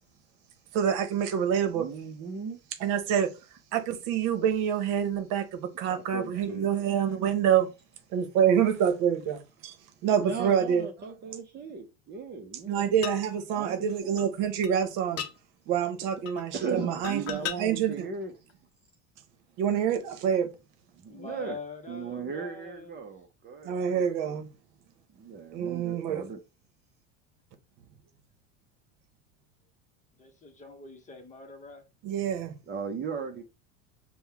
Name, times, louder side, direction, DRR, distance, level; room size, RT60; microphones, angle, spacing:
voice 1, 0.7-1.9 2.8-7.7 8.1-10.9 12.6-15.3 15.7-18.1 19.6-20.6 23.6-24.5 25.5-26.3 32.0-32.5, right 8 dB, 65° right, 0.9 m, -27 dB
voice 2, 1.8-2.6 5.8-6.7 10.2-12.9 13.5-13.9 16.5-18.3 21.0-21.6 21.9-24.1 25.2-26.4 32.7-33.4, right 5 dB, 30° right, 0.7 m, -37 dB
ceramic clay pot lid hits, 13.0-13.2 14.2-14.3 14.6-14.7 15.2-15.3 16.3-16.5 17.0-17.6 18.5-18.6, left 10 dB, 45° left, 0.7 m, -35 dB
voice 3, 21.1-23.0 30.2-31.9, left 3 dB, 20° left, 0.9 m, -43 dB
5.4 x 2.2 x 3.4 m
supercardioid pair, 115°, 34 cm